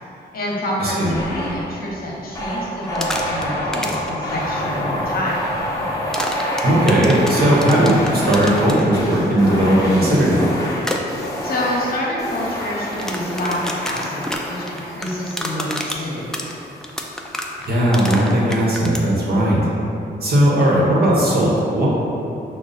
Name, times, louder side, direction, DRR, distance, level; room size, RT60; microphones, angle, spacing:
voice 1, 0.3-5.5 11.4-16.5, left 1 dB, 55° left, -4 dB, 0.9 m, -27 dB
sound 1, 1.1-1.8 2.3-17.0, equal, 20° left, 0.9 m, -27 dB
sound 2, 2.8-3.4 3.7-4.1 6.1-8.8 10.8-11.0 12.8-19.0, left 1 dB, 5° left, 0.3 m, -28 dB
voice 2, 6.6-10.5 17.6-19.6 20.2-21.9, right 1 dB, 55° right, -5 dB, 1.1 m, -17 dB
5.3 x 2.3 x 4.0 m, 2.8 s
cardioid pair, 105°, 18 cm